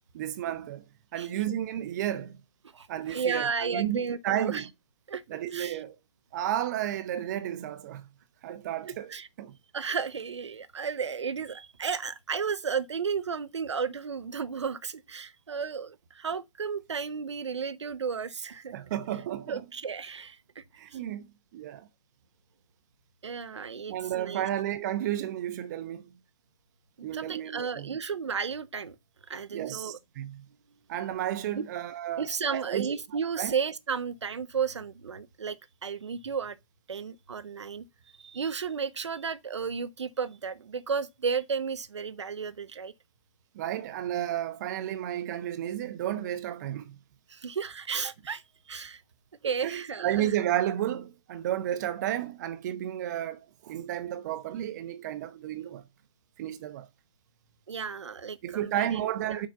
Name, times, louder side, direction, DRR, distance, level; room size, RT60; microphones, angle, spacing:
voice 1, 0.1-0.8 1.1-2.3 2.9-4.7 5.3-6.0 6.3-8.1 8.4-9.6 18.7-19.6 20.8-21.9 23.9-26.1 27.0-28.0 29.5-30.5 30.9-32.9 33.4-33.5 43.5-47.0 49.4-55.8 56.4-56.9 58.4-59.5, right 11 dB, 35° right, 0.9 m, -32 dB
voice 2, 2.7-4.6 5.1-5.2 5.5-5.8 8.8-9.3 9.7-18.7 19.5-20.6 20.9-21.0 23.2-24.5 27.1-29.0 29.3-30.0 31.6-31.7 32.2-35.6 35.8-36.6 36.9-37.8 38.2-42.9 47.3-49.0 49.4-50.3 57.7-58.9 59.3-59.4, right 6 dB, 60° right, 0.9 m, -33 dB
6.7 x 5.2 x 7.1 m
figure-of-eight pair, 130°, 17 cm